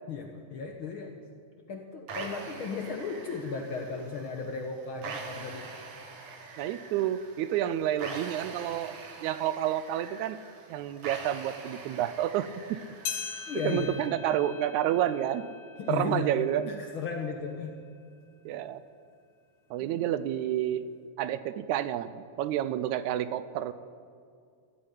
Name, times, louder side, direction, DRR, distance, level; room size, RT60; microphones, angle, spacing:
voice 1, 0.1-1.1 1.7-5.7 13.5-14.0 15.8-16.3 16.7-17.8 19.8-20.5, left 5 dB, 65° left, 3 dB, 1.3 m, -35 dB
sound 1, 2.1-14.1, right 4 dB, 55° right, 2.2 m, -44 dB
voice 2, 6.6-10.4 10.7-12.5 13.6-15.4 15.9-16.8 18.5-18.8 19.7-20.9 21.2-23.7, right 11 dB, 80° right, 14 dB, 1.9 m, -29 dB
sound 2, 13.0-17.7 18.2-18.3 19.1-19.2 20.1-20.2, left 6 dB, 80° left, 3.2 m, -42 dB
14.5 x 8.7 x 9.9 m, 2.3 s
omnidirectional pair, 3.5 m